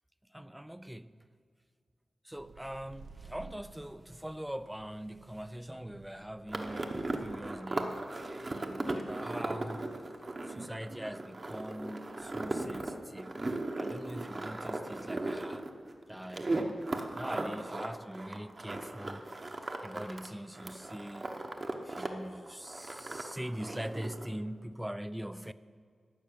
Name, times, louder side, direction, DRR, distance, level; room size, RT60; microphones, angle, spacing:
voice 1, 0.3-1.1 2.2-8.1 8.4-9.9 10.5-13.4 13.7-15.7 16.1-16.8 17.1-19.2 19.6-21.3 21.8-25.5, equal, 5° right, 0.3 m, -42 dB
sound 1, 2.3-7.5, right 4 dB, 85° right, 0.8 m, -55 dB
sound 2, 6.5-20.3 20.5-22.1 22.3-24.3, right 2 dB, 30° right, 0.9 m, -37 dB
12.0 x 6.4 x 8.7 m
wide cardioid pair, 115°, 0 cm